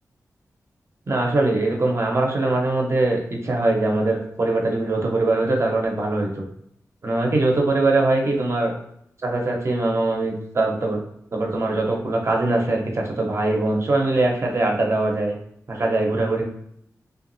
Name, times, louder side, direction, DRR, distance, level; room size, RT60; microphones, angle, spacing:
voice 1, 1.1-6.4 7.0-8.7 9.2-11.0 11.3-15.4 15.7-16.4, right 2 dB, 50° right, 0 dB, 0.8 m, -22 dB
2.9 x 2.4 x 2.6 m, 0.71 s
cardioid pair, 65°, 6 cm